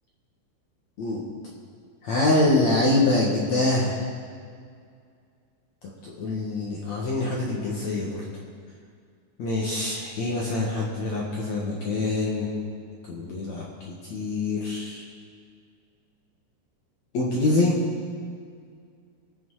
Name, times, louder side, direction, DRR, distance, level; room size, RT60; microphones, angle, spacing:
voice 1, 2.0-4.0 6.0-8.2 9.4-12.5 13.1-15.0 17.1-17.8, left 2 dB, 60° left, -4 dB, 1.9 m, -25 dB
23.0 x 8.2 x 4.8 m, 2.2 s
omnidirectional pair, 5.5 m